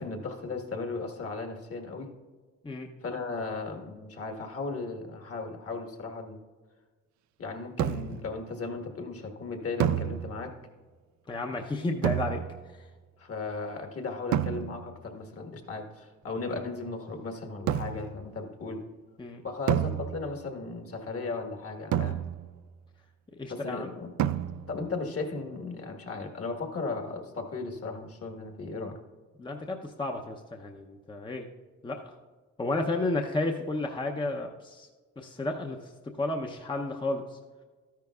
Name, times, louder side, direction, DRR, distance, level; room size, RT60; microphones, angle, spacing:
voice 1, 0.0-2.1 3.0-6.4 7.4-10.5 13.2-18.8 19.4-22.2 23.5-24.1 24.7-29.0, left 3 dB, 50° left, 4 dB, 1.5 m, -36 dB
sound 1, 7.8-8.3 9.8-10.7 12.0-12.8 14.3-15.0 17.7-18.2 19.7-20.5 21.9-22.7 24.2-24.9, right 10 dB, 70° right, 0.5 m, -30 dB
voice 2, 11.3-12.4 12.7-12.9 19.2-19.4 23.4-23.9 29.4-31.5 31.8-32.1 32.6-34.9 35.2-35.9 36.2-37.4, left 2 dB, 15° left, 3 dB, 0.7 m, -32 dB
12.5 x 10.5 x 2.4 m, 1.4 s
cardioid pair, 90°, 30 cm